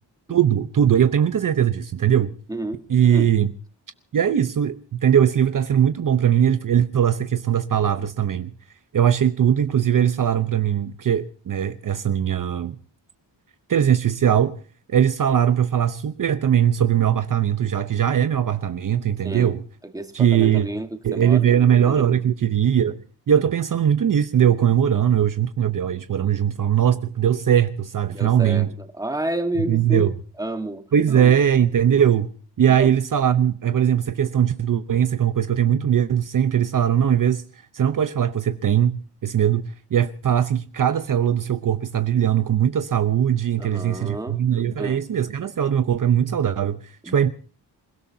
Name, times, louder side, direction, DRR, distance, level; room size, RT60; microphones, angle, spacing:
voice 1, 0.3-2.3 2.9-3.5 4.1-8.5 8.9-12.8 13.7-14.6 14.9-19.6 20.1-20.7 21.0-28.7 29.6-30.1 30.9-32.3 32.6-47.3, right 9 dB, 50° right, 0.8 m, -20 dB
voice 2, 2.5-3.3 19.2-19.6 19.9-21.5 21.8-22.1 28.1-30.1 30.4-30.9 31.1-31.4 32.7-32.9 43.6-44.4 44.8-45.0 47.0-47.1, right 1 dB, 10° right, 1.5 m, -30 dB
27.5 x 17.0 x 2.8 m
wide cardioid pair, 160°, 42 cm